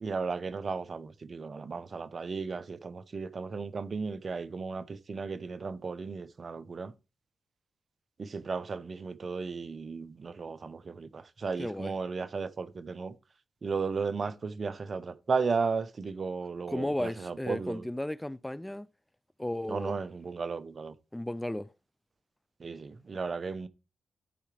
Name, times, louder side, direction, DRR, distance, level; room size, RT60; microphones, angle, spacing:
voice 1, 0.0-6.9 8.2-13.1 13.6-17.8 19.7-20.9 22.6-23.7, right 4 dB, 55° right, 0.8 m, -35 dB
voice 2, 11.6-11.9 16.7-18.9 19.4-20.0 21.1-21.7, left 1 dB, 10° left, 0.4 m, -34 dB
13.5 x 4.9 x 3.3 m
supercardioid pair, 50°, 0 cm